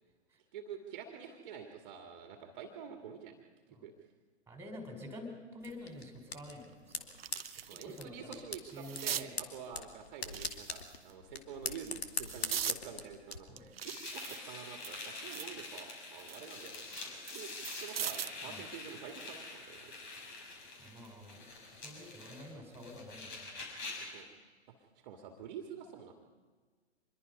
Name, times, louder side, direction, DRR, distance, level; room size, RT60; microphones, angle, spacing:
voice 1, 0.5-3.4 3.7-3.9 7.6-16.9 17.3-17.5 17.8-19.9 24.0-24.3 24.8-26.1, right 7 dB, 40° right, 4 dB, 2.2 m, -48 dB
voice 2, 4.5-7.0 7.7-9.4 13.5-13.7 18.4-18.6 20.8-21.5 21.8-23.8, left 1 dB, 5° right, 4 dB, 4.6 m, -49 dB
sound 1, 5.6-13.4, left 5 dB, 65° left, 2.4 m, -43 dB
sound 2, 6.0-6.1 6.6-8.0 8.3-9.3 10.2-11.1 11.7-12.8 13.3-15.6 16.0-18.4 19.8-20.0, right 9 dB, 60° right, 0.8 m, -41 dB
sound 3, 13.8-24.2, left 3 dB, 45° left, 6.1 m, -46 dB
25.5 x 22.0 x 5.4 m, 1.5 s
figure-of-eight pair, 115°, 33 cm